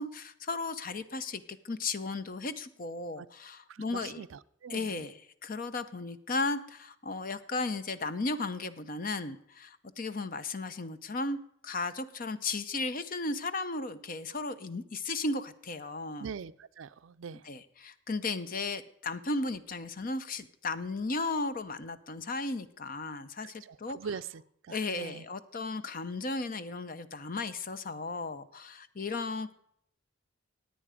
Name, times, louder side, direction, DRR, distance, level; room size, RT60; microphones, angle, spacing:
voice 1, 0.0-4.2 4.7-5.1 5.4-16.3 17.5-24.0 24.7-29.5, left 3 dB, 45° left, 13 dB, 0.7 m, -35 dB
voice 2, 3.7-5.1 16.2-17.5 23.4-25.3, right 6 dB, 70° right, 15 dB, 0.4 m, -43 dB
17.0 x 9.1 x 5.0 m, 0.72 s
head